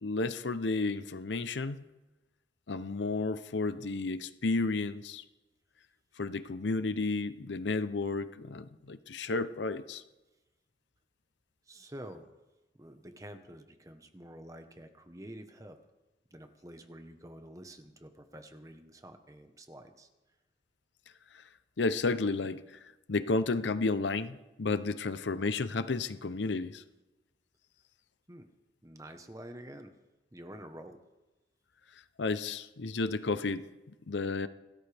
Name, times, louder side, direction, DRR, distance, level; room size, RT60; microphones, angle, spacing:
voice 1, 0.0-1.8 2.7-5.2 6.2-10.0 21.8-22.6 23.1-26.8 32.2-33.6 34.1-34.5, left 3 dB, 80° left, 13 dB, 0.7 m, -32 dB
voice 2, 11.7-12.3 12.7-15.8 16.3-20.1 28.3-28.5 28.8-29.9 30.3-31.0, right 1 dB, 20° right, 7 dB, 1.1 m, -48 dB
28.0 x 13.5 x 3.5 m, 1.1 s
head